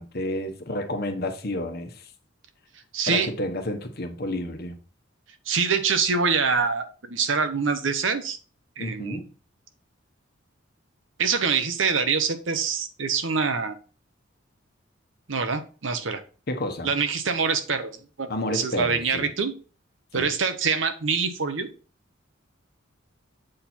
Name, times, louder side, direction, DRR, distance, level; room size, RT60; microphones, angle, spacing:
voice 1, 0.0-2.1 3.1-4.8 8.8-9.3 16.5-16.9 18.3-19.3 20.1-20.3, left 1 dB, 50° left, 1.1 m, -30 dB
voice 2, 2.9-3.3 5.5-8.4 8.8-9.2 11.2-13.8 15.3-16.2 16.8-19.5 20.1-21.7, right 5 dB, 70° right, 1.0 m, -25 dB
7.6 x 4.4 x 4.3 m
head